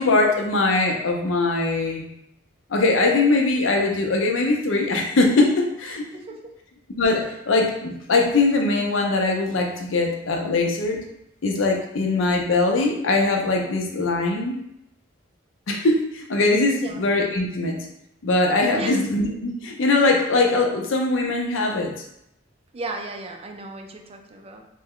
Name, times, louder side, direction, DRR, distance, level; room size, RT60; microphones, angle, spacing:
voice 1, 0.0-2.0 2.7-6.0 7.0-11.0 11.4-14.6 15.7-17.9 18.2-21.9, left 3 dB, 85° left, 2 dB, 0.6 m, -21 dB
voice 2, 6.1-6.5 16.7-17.0 18.7-19.0 22.7-24.6, right 2 dB, 30° right, 4 dB, 0.4 m, -35 dB
3.3 x 2.2 x 3.6 m, 0.79 s
head